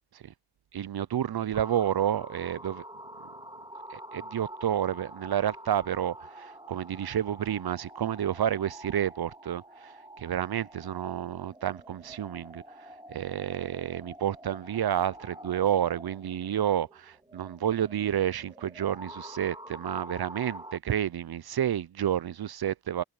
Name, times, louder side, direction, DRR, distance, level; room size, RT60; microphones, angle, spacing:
voice 1, 0.7-2.8 3.9-23.0, right 10 dB, 65° right, 0.5 m, -30 dB
sound 1, 1.5-20.8, right 1 dB, 10° right, 2.7 m, -47 dB
wide cardioid pair, 45°, 41 cm